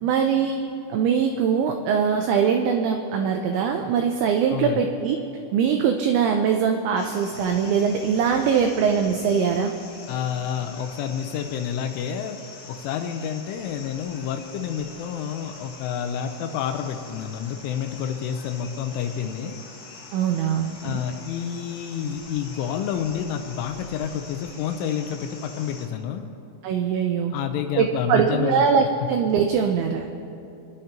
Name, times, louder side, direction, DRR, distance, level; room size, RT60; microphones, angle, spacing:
voice 1, 0.0-0.6 0.9-5.2 5.5-9.7 20.1-21.0 26.6-27.3 27.8-30.1, right 7 dB, 90° right, 4 dB, 2.5 m, -22 dB
voice 2, 4.5-4.9 10.1-12.4 12.7-19.6 20.8-26.3 27.3-28.6, left 8 dB, 85° left, 6 dB, 2.9 m, -29 dB
sound 1, 7.0-25.9, left 4 dB, 65° left, 2.1 m, -44 dB
27.0 x 11.0 x 2.9 m, 2.8 s
omnidirectional pair, 5.9 m